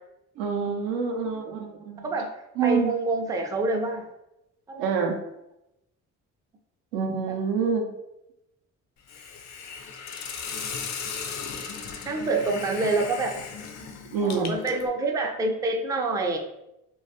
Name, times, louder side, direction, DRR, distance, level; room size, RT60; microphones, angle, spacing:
voice 1, 0.4-2.1 2.6-2.9 4.8-5.2 6.9-7.9 14.1-14.6, right 5 dB, 80° right, 3 dB, 0.5 m, -26 dB
voice 2, 2.6-4.0 4.7-4.9 12.1-13.4 14.2-16.4, right 2 dB, 10° right, 3 dB, 0.3 m, -26 dB
Hiss, 9.1-14.9, left 6 dB, 50° left, 0.4 m, -36 dB
2.2 x 2.2 x 2.6 m, 0.88 s
supercardioid pair, 55°, 34 cm